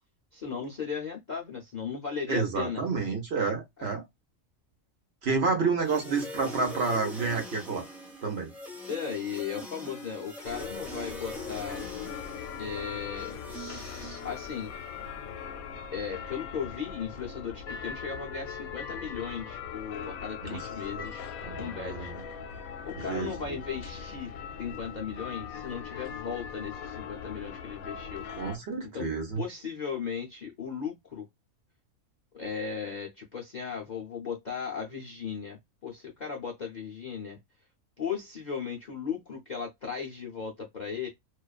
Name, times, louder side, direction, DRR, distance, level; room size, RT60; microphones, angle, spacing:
voice 1, 0.3-2.8 3.8-3.9 5.9-6.0 8.9-11.8 12.6-14.7 15.9-21.3 21.6-22.1 22.9-24.3 24.6-28.2 28.9-29.1 29.4-31.3 32.3-37.4 38.0-41.1, left 6 dB, 50° left, 0.5 m, -36 dB
voice 2, 2.3-4.0 5.2-7.8 8.2-8.5 20.4-20.6 21.0-21.1 21.4-22.2 22.9-23.3 28.4-29.4, right 4 dB, 55° right, 1.0 m, -29 dB
sound 1, 5.8-14.9, left 1 dB, ahead, 0.7 m, -43 dB
sound 2, 10.4-28.6, left 7 dB, 85° left, 1.1 m, -40 dB
2.4 x 2.3 x 2.3 m
omnidirectional pair, 1.5 m